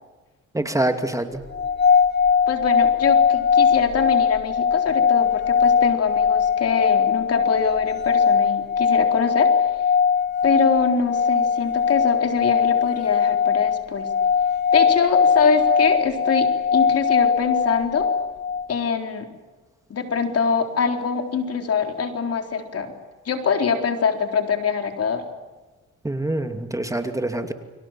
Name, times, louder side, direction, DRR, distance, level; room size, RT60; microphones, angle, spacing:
voice 1, 0.5-1.4 26.0-27.5, right 1 dB, 10° right, 6 dB, 2.5 m, -25 dB
sound 1, 1.5-18.7, left 6 dB, 35° left, 2.0 m, -20 dB
voice 2, 2.5-9.7 10.4-14.1 14.7-18.1 18.7-19.3 19.9-22.9 23.3-25.2, left 5 dB, 55° left, 5 dB, 4.0 m, -24 dB
30.0 x 24.0 x 7.5 m, 1.2 s
cardioid pair, 90°, 30 cm